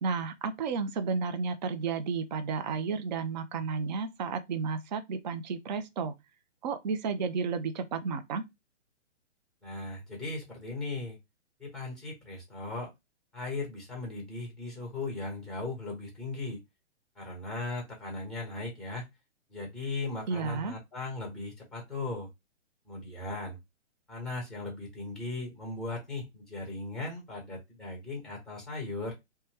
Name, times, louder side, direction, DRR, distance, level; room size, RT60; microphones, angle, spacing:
voice 1, 0.0-6.1 6.6-8.5 20.3-20.7, right 5 dB, 40° right, 0.4 m, -32 dB
voice 2, 9.6-11.2 11.6-12.9 13.3-16.6 17.1-19.0 19.5-22.3 22.9-23.6 24.1-29.2, left 3 dB, ahead, 1.1 m, -37 dB
2.6 x 2.2 x 3.3 m
figure-of-eight pair, 125°, 36 cm